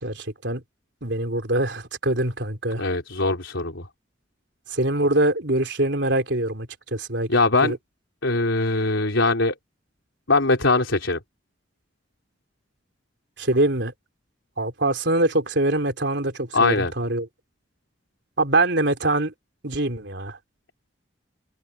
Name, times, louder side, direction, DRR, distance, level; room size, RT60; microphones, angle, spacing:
voice 1, 0.0-0.6 1.0-2.8 4.7-7.3 7.6-7.8 13.4-13.9 14.6-17.3 18.4-19.3 19.6-20.4, right 2 dB, 70° right, 3.5 m, -23 dB
voice 2, 2.8-3.9 7.3-7.8 8.2-9.5 10.3-11.2 16.5-16.9, left 3 dB, 90° left, 4.3 m, -21 dB
open air
head